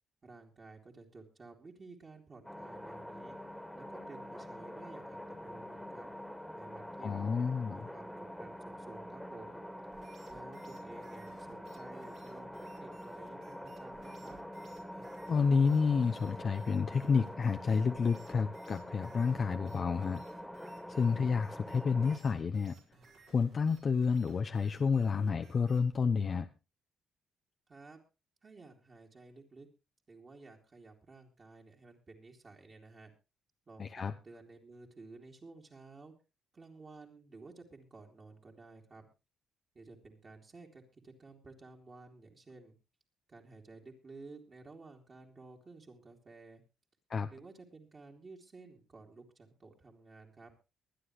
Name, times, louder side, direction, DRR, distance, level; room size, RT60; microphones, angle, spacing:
voice 1, 0.2-3.4 3.7-6.1 6.5-9.6 10.3-14.4 27.7-28.0 28.4-29.7 30.1-33.1 33.7-36.1 36.5-39.1 39.7-42.7 43.3-46.6 47.3-50.5, right 3 dB, 35° right, 3.0 m, -53 dB
sound 1, 2.4-22.2, equal, 5° left, 2.0 m, -46 dB
voice 2, 7.0-7.8 15.3-20.2 20.9-22.8 23.3-26.5 33.8-34.1 47.1-47.3, left 5 dB, 45° left, 0.8 m, -30 dB
sound 2, 9.9-26.0, right 5 dB, 70° right, 4.7 m, -61 dB
23.0 x 9.7 x 3.2 m
cardioid pair, 90°, 0 cm